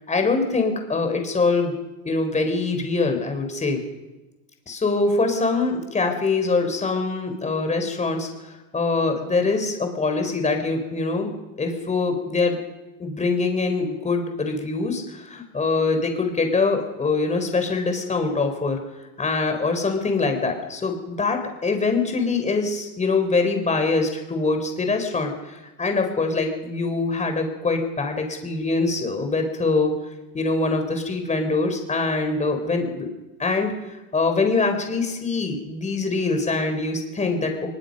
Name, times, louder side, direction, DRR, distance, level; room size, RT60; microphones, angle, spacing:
voice 1, 0.1-1.7 2.0-3.8 4.7-11.3 11.6-12.6 13.0-18.8 19.2-29.9 30.3-33.1 33.4-33.7 34.1-37.7, left 3 dB, 15° left, 5 dB, 4.3 m, -24 dB
23.0 x 21.5 x 5.4 m, 1.1 s
supercardioid pair, 130°, 50 cm